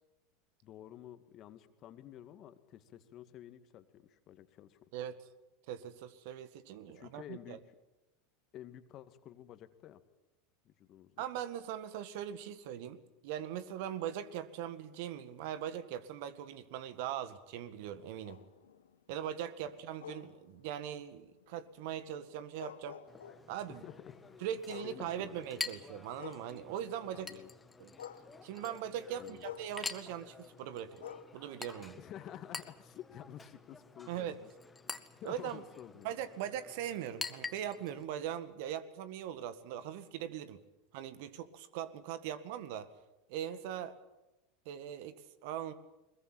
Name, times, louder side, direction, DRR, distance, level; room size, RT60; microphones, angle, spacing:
voice 1, 0.6-4.9 6.9-7.8 8.5-10.0 10.6-11.2 23.7-24.4 24.8-25.7 27.1-27.5 29.2-29.5 32.0-34.5 35.2-36.2, left 11 dB, 45° left, 10 dB, 2.1 m, -51 dB
voice 2, 5.7-7.6 11.2-18.4 19.1-23.0 23.5-23.8 24.4-27.3 27.8-27.9 28.4-31.0 31.3-32.0 34.1-34.4 35.2-35.6 36.0-40.6 40.9-42.9 43.3-43.9 44.7-45.7, right 10 dB, 65° right, 12 dB, 1.8 m, -40 dB
sound 1, 17.9-27.1 27.4-32.7 33.2-36.7, left 9 dB, 85° left, 1.7 m, -54 dB
Chink clink, 23.1-38.0, left 4 dB, 15° left, 1.8 m, -47 dB
21.5 x 21.5 x 9.0 m, 0.99 s
hypercardioid pair, 90°, 0 cm